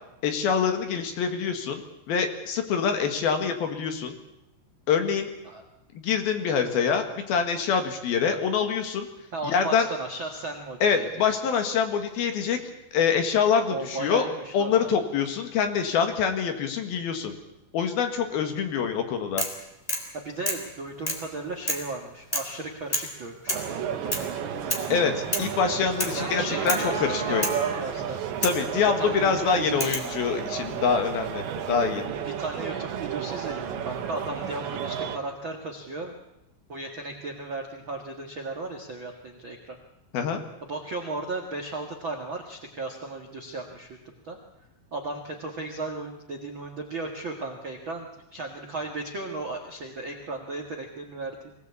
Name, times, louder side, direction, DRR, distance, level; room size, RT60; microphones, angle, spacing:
voice 1, 0.2-1.8 2.1-4.1 4.9-5.3 5.9-9.1 9.4-9.9 10.8-12.6 12.9-14.3 14.5-17.3 17.7-19.4 24.9-27.5 28.4-32.0 40.1-40.4, left 6 dB, 65° left, 6 dB, 3.3 m, -25 dB
voice 2, 9.3-11.4 13.7-14.9 20.1-23.8 24.0-24.5 26.1-28.2 29.0-30.0 32.3-36.1 36.7-39.8 40.7-44.0 44.2-44.4 44.9-51.5, right 2 dB, 50° right, 2 dB, 1.4 m, -35 dB
sound 1, 19.4-19.6 19.9-20.1 20.4-20.7 21.1-21.3 21.7-21.9 22.3-22.6 22.9-23.1 23.5-23.7 24.1-24.3 24.7-24.9 25.3-25.5 26.0-26.2 26.7-26.9 27.4-27.6 28.4-28.6 29.8-30.1 31.3-31.8, equal, 10° left, 2.5 m, -30 dB
sound 2, 23.5-35.2, right 8 dB, 80° right, 3.8 m, -32 dB
sound 3, 25.8-28.2, right 3 dB, 30° right, 5.5 m, -35 dB
23.5 x 17.5 x 8.4 m, 0.89 s
omnidirectional pair, 5.1 m